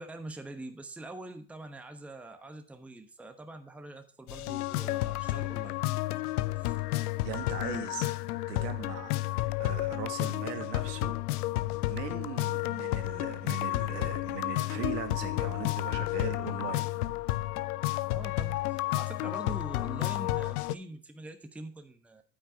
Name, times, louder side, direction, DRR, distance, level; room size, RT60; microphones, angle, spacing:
voice 1, 0.0-5.7 6.6-6.8 18.1-22.2, right 2 dB, 5° right, 1.0 m, -44 dB
sound 1, 4.3-20.7, left 17 dB, 65° left, 0.7 m, -31 dB
voice 2, 7.2-8.1 8.5-9.1 9.6-11.1 11.8-17.1, right 9 dB, 70° right, 2.3 m, -39 dB
9.3 x 9.0 x 3.5 m
hypercardioid pair, 95°, 50 cm